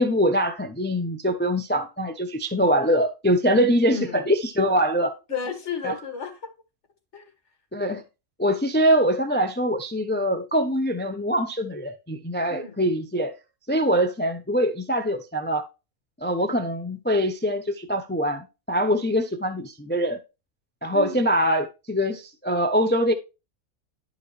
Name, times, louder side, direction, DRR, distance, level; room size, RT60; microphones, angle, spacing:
voice 1, 0.0-5.1 5.8-5.9 7.7-8.0 8.4-13.3 13.7-15.7 16.2-20.2 20.8-23.1, equal, 15° left, 0.4 m, -23 dB
voice 2, 3.9-4.2 5.0-6.5 7.1-7.2 12.5-12.8 20.9-21.3, left 6 dB, 55° left, 2.1 m, -33 dB
11.5 x 4.9 x 3.3 m
omnidirectional pair, 1.5 m